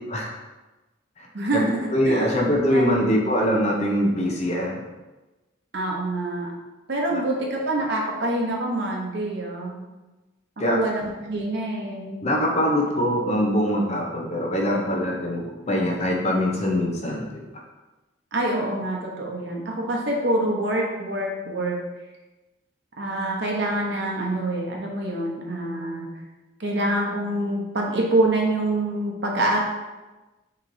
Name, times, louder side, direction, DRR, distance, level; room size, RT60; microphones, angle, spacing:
voice 1, 1.3-3.1 5.7-6.5 6.9-9.8 10.6-12.2 18.3-21.8 23.0-26.1 26.6-29.6, right 1 dB, 60° right, -1 dB, 0.8 m, -26 dB
voice 2, 1.9-4.8 7.1-7.2 10.6-10.8 12.2-17.4, equal, 35° left, 0 dB, 0.6 m, -23 dB
5.7 x 3.0 x 2.6 m, 1.1 s
head